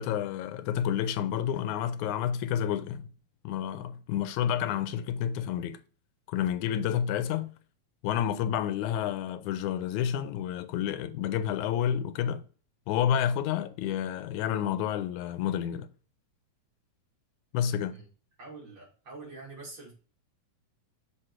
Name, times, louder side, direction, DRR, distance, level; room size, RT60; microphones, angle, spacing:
voice 1, 0.0-3.1 3.4-5.8 6.3-7.5 8.0-12.4 12.9-15.9 17.5-18.0, left 9 dB, 85° left, 2.0 m, -29 dB
voice 2, 18.4-19.9, right 3 dB, 40° right, 2.6 m, -45 dB
6.8 x 4.3 x 4.4 m
omnidirectional pair, 3.4 m